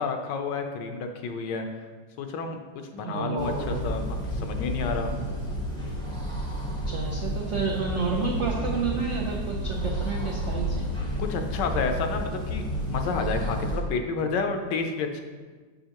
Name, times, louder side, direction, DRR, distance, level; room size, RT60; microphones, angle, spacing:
voice 1, 0.0-1.9 2.2-2.6 2.9-5.2 11.2-15.2, left 4 dB, 75° left, 5 dB, 1.2 m, -30 dB
voice 2, 3.0-3.9 6.8-10.9, right 4 dB, 85° right, -1 dB, 0.6 m, -30 dB
sound 1, 3.4-13.8, equal, 5° left, 0.5 m, -31 dB
6.9 x 5.6 x 2.9 m, 1.4 s
omnidirectional pair, 2.1 m